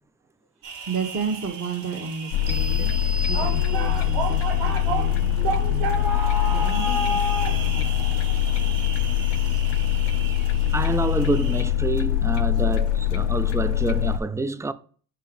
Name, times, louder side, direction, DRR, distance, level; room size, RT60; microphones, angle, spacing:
sound 1, 0.6-11.6, right 2 dB, 80° right, 2.0 m, -32 dB
voice 1, 0.9-2.9 3.3-6.0 6.4-8.8, right 5 dB, 35° right, 1.2 m, -33 dB
sound 2, 2.3-14.2, left 11 dB, 75° left, 0.5 m, -23 dB
sound 3, 2.5-4.2, equal, 60° right, 0.9 m, -36 dB
voice 2, 10.7-14.7, right 3 dB, 10° right, 0.3 m, -27 dB
4.8 x 4.6 x 5.2 m
cardioid pair, 95°, 42 cm